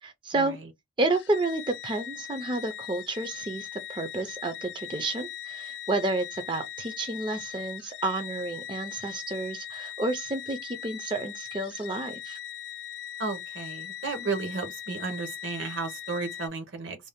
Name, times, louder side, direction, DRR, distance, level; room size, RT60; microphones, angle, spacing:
voice 1, 0.0-0.6 1.0-12.4, right 2 dB, 25° right, 0.3 m, -30 dB
sound 1, 1.1-16.5, left 10 dB, 55° left, 0.3 m, -40 dB
voice 2, 13.2-17.0, right 4 dB, 70° right, 0.8 m, -33 dB
2.6 x 2.0 x 3.4 m
head